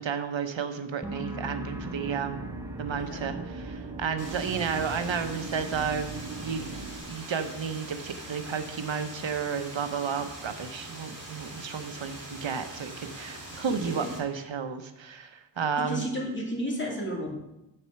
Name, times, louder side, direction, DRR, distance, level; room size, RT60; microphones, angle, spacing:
voice 1, 0.0-2.4 2.8-6.1 6.4-16.1, right 6 dB, 80° right, 8 dB, 0.9 m, -32 dB
sound 1, 1.0-8.5 8.8-9.3, equal, 5° right, 1.0 m, -44 dB
sound 2, 1.7-7.0, right 3 dB, 60° right, 1.8 m, -39 dB
voice 2, 2.9-3.3 13.7-14.1 15.8-17.3, equal, 25° left, -2 dB, 2.4 m, -33 dB
sound 3, 4.2-14.2, right 1 dB, 45° right, 3.2 m, -43 dB
7.8 x 7.5 x 5.7 m, 0.92 s
wide cardioid pair, 100°, 45 cm